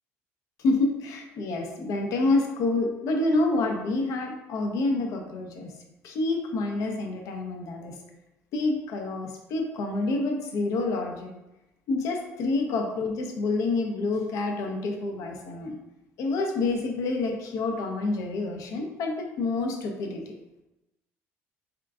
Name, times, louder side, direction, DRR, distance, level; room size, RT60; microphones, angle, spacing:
voice 1, 0.6-5.7 6.0-8.0 8.5-11.3 11.9-15.8 16.2-20.3, left 2 dB, 70° left, 3 dB, 0.6 m, -28 dB
3.6 x 2.4 x 3.4 m, 0.95 s
cardioid pair, 95°, 6 cm